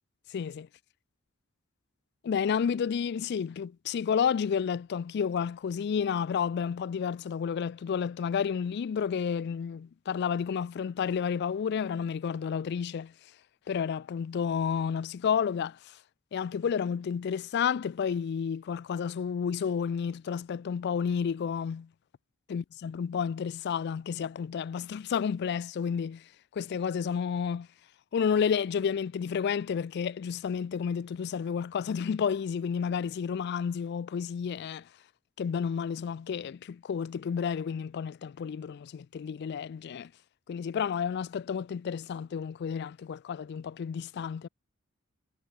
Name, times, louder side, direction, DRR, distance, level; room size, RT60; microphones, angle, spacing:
voice 1, 0.3-0.7 2.2-13.1 13.7-15.8 16.3-21.9 22.5-26.2 26.5-27.7 28.1-34.8 35.4-40.1 40.5-44.5, left 7 dB, 50° left, 0.3 m, -31 dB
head